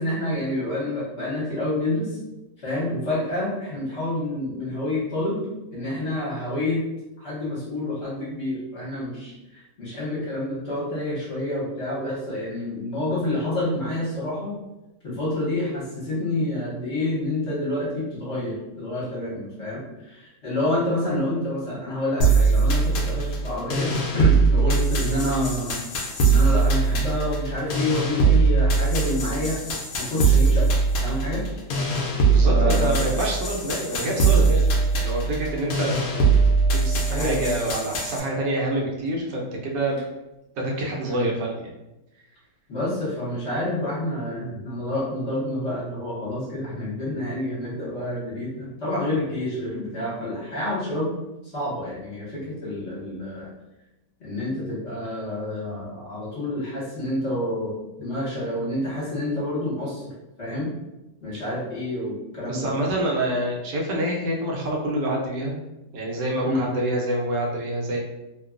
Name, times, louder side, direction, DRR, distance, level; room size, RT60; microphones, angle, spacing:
voice 1, 0.0-2.2 2.6-5.4 5.7-6.8 7.2-14.6 15.0-25.8 26.2-29.6 30.0-30.7 31.0-31.4 32.5-33.1 37.1-37.4 41.0-41.3 42.7-51.2 51.5-53.5 54.2-60.1 60.4-60.7 61.2-62.7 66.4-66.7, left 1 dB, 50° left, -8 dB, 1.1 m, -28 dB
sound 1, 22.2-38.2, right 4 dB, 70° left, 0.9 m, -21 dB
sound 2, 31.6-39.6 39.9-40.0, right 5 dB, 60° right, 0.9 m, -43 dB
voice 2, 32.2-34.7 34.9-36.3 36.7-40.1 40.6-41.6 62.4-65.6 65.9-68.0, right 1 dB, 90° right, -1 dB, 1.3 m, -27 dB
3.0 x 2.2 x 2.4 m, 0.97 s
omnidirectional pair, 1.8 m